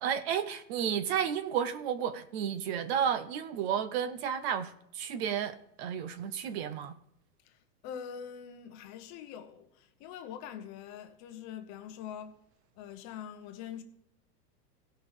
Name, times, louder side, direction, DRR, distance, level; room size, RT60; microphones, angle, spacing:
voice 1, 0.0-6.9, right 8 dB, 40° right, 0.8 m, -32 dB
voice 2, 7.4-12.3 12.8-13.8, left 8 dB, 35° left, 1.1 m, -44 dB
16.0 x 5.8 x 4.9 m
supercardioid pair, 145°, 48 cm